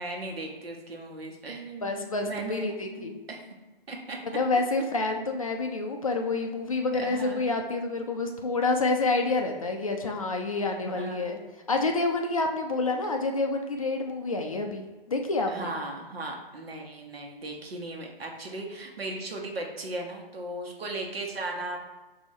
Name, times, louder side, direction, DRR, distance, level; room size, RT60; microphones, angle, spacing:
voice 1, 0.0-3.4 3.9-4.2 7.0-7.4 10.9-11.3 15.5-21.8, right 2 dB, 75° right, 1 dB, 1.1 m, -37 dB
voice 2, 1.8-3.1 4.3-11.4 11.7-15.7, left 3 dB, 35° left, 3 dB, 0.4 m, -28 dB
4.7 x 2.7 x 4.1 m, 1.2 s
hypercardioid pair, 160°, 30 cm